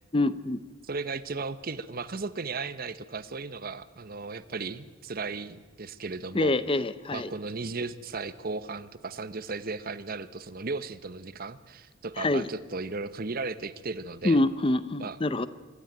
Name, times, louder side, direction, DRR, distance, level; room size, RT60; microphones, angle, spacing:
voice 1, 0.1-0.6 6.3-7.3 12.2-12.5 14.2-15.5, left 2 dB, 25° left, 14 dB, 0.6 m, -25 dB
voice 2, 0.8-6.5 7.1-14.4 15.0-15.2, right 3 dB, 45° right, 14 dB, 0.8 m, -36 dB
25.5 x 12.5 x 9.2 m, 1.3 s
head